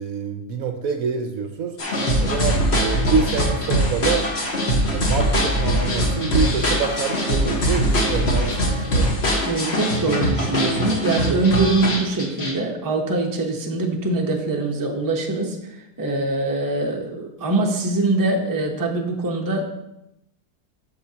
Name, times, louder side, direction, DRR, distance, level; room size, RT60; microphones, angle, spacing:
voice 1, 0.0-4.3 4.9-9.1, right 5 dB, 65° right, 5 dB, 1.0 m, -26 dB
sound 1, 1.8-12.5, equal, 40° left, 1.5 m, -22 dB
voice 2, 9.4-19.6, right 2 dB, 20° right, 1 dB, 0.6 m, -23 dB
13.5 x 4.9 x 2.8 m, 0.86 s
omnidirectional pair, 1.7 m